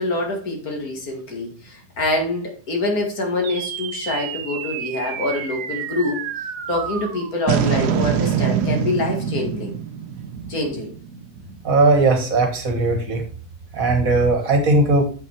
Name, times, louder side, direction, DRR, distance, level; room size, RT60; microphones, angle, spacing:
voice 1, 0.0-9.8 10.5-10.9, left 2 dB, 65° left, 1 dB, 2.5 m, -25 dB
sound 1, 3.4-12.0, right 8 dB, 80° right, 1.3 m, -26 dB
voice 2, 11.6-13.2 13.7-15.1, right 3 dB, 55° right, 5 dB, 1.9 m, -18 dB
7.4 x 5.8 x 4.6 m, 0.38 s
omnidirectional pair, 1.7 m